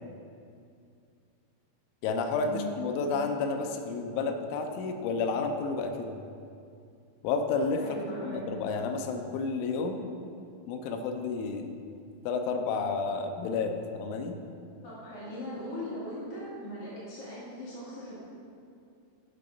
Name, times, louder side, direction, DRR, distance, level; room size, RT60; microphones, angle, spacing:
voice 1, 2.0-6.2 7.2-7.8 8.2-10.1 10.7-11.7 12.3-14.4, left 4 dB, 85° left, 5 dB, 3.1 m, -31 dB
voice 2, 7.8-8.4 14.8-18.1, left 1 dB, 60° left, -8 dB, 1.5 m, -39 dB
10.5 x 5.8 x 5.1 m, 2.4 s
omnidirectional pair, 5.5 m